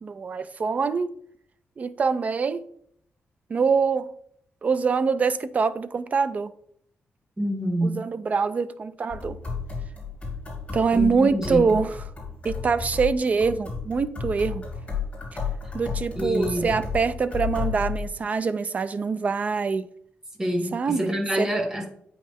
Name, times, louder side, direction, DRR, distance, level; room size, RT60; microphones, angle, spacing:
voice 1, 0.0-1.1 1.8-2.6 3.5-4.1 4.6-6.5 7.8-9.4 10.7-11.9 12.4-14.6 15.7-19.9 20.7-21.5, right 5 dB, 35° right, 0.4 m, -24 dB
voice 2, 7.4-8.0 10.9-11.7 16.2-16.7 20.4-21.9, equal, 15° right, 1.3 m, -27 dB
sound 1, 9.1-18.0, left 5 dB, 25° left, 2.8 m, -33 dB
8.7 x 5.3 x 3.5 m
wide cardioid pair, 175°, 5 cm